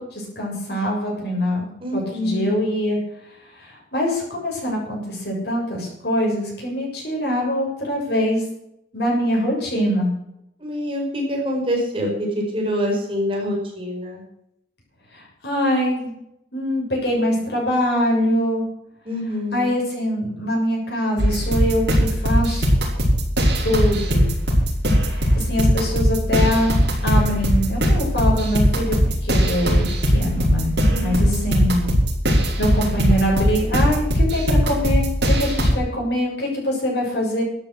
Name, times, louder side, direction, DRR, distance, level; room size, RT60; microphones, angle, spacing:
voice 1, 0.0-3.0 3.6-8.4 8.9-10.1 15.1-16.1 16.5-18.6 19.5-22.7 23.6-24.3 25.1-30.7 31.0-31.9 32.6-37.4, equal, 60° left, -2 dB, 7.5 m, -23 dB
voice 2, 1.8-2.4 10.6-14.2 19.0-19.7 30.9-31.5, equal, 30° right, -1 dB, 5.0 m, -25 dB
sound 1, 21.2-35.7, equal, 60° right, 5.3 m, -19 dB
13.0 x 9.8 x 8.2 m, 0.79 s
head